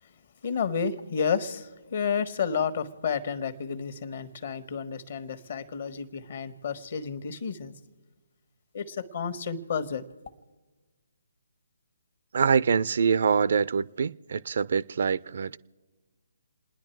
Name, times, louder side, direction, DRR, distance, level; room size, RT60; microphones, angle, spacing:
voice 1, 0.4-7.7 8.7-10.0, left 6 dB, 50° left, 1.4 m, -31 dB
voice 2, 12.3-15.6, right 6 dB, 55° right, 0.5 m, -25 dB
29.0 x 10.5 x 4.6 m
figure-of-eight pair, 140°, 0 cm